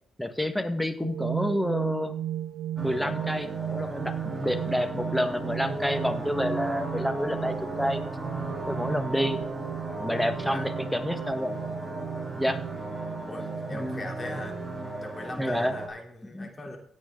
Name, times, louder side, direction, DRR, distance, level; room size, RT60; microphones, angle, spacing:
voice 1, 0.2-2.2 2.8-8.0 8.7-9.4 10.0-11.5 12.4-12.6 13.7-14.1 15.4-15.7 16.3-16.5, equal, 5° left, 9 dB, 1.5 m, -29 dB
sound 1, 1.0-13.8, right 11 dB, 85° right, 0.6 m, -36 dB
sound 2, 2.8-15.9, right 2 dB, 20° right, 3.4 m, -35 dB
voice 2, 13.3-14.6 15.0-16.8, left 1 dB, 30° left, 3 dB, 3.3 m, -39 dB
16.5 x 8.8 x 3.8 m, 0.62 s
cardioid pair, 75°, 0 cm